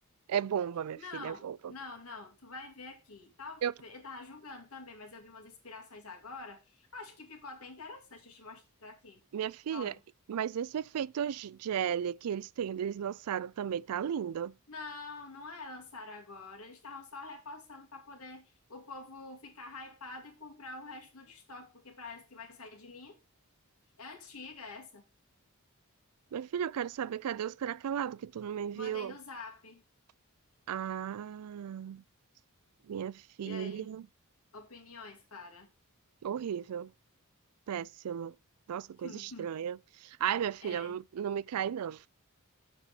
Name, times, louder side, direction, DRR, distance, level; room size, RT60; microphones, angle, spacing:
voice 1, 0.3-1.6 3.6-3.7 9.3-9.9 10.3-14.5 26.3-29.1 30.7-32.0 32.9-34.1 36.2-36.9 37.7-38.3 38.7-42.1, right 8 dB, 85° right, 0.4 m, -35 dB
voice 2, 1.0-9.2 9.7-10.0 14.7-23.2 24.0-25.0 28.7-29.8 33.4-33.9 34.5-35.7 39.0-39.5 40.6-41.0, left 3 dB, 70° left, 2.5 m, -47 dB
7.1 x 5.4 x 5.8 m
head